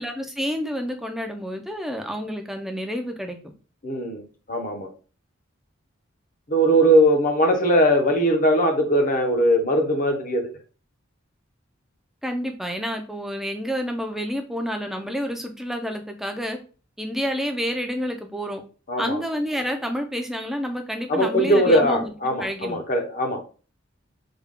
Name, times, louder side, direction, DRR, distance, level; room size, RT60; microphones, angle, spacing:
voice 1, 0.0-3.5 12.2-16.6 17.0-18.6 19.0-22.8, equal, ahead, 4 dB, 0.5 m, -29 dB
voice 2, 3.8-4.2 4.5-4.9 6.5-10.5 18.9-19.2 21.1-23.4, equal, 40° left, 4 dB, 0.8 m, -20 dB
3.4 x 2.3 x 3.6 m, 0.36 s
head